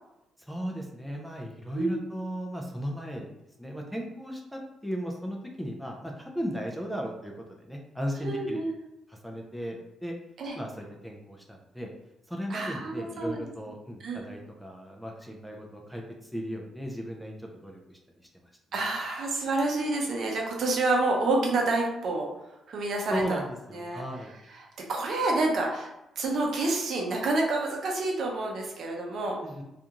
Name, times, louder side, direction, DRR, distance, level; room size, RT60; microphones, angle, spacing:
voice 1, 0.5-3.3 3.6-8.6 9.1-10.2 10.5-11.9 12.3-18.0 23.1-24.3 29.4-29.6, equal, ahead, 0 dB, 0.4 m, -36 dB
voice 2, 8.2-8.7 10.4-10.6 12.5-13.4 14.0-14.2 18.7-22.3 22.7-23.4 23.7-24.0 24.6-25.9 26.2-29.4, right 2 dB, 60° right, 0 dB, 0.7 m, -28 dB
2.5 x 2.3 x 2.9 m, 0.88 s
cardioid pair, 90°, 0 cm